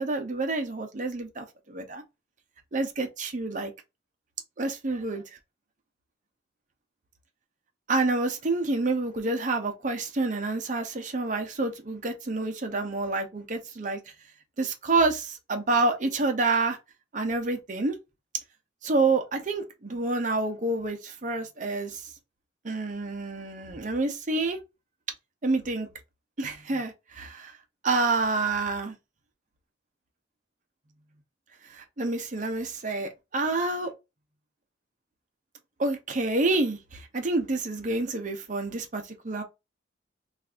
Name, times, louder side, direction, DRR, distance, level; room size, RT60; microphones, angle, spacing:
voice 1, 0.0-2.0 2.7-3.7 4.6-5.2 7.9-14.0 14.6-16.8 17.1-18.0 18.8-22.0 22.6-24.6 25.4-25.9 26.4-27.5 27.8-28.9 31.7-33.9 35.8-39.4, right 3 dB, 40° right, 0.7 m, -28 dB
2.6 x 2.4 x 3.4 m
head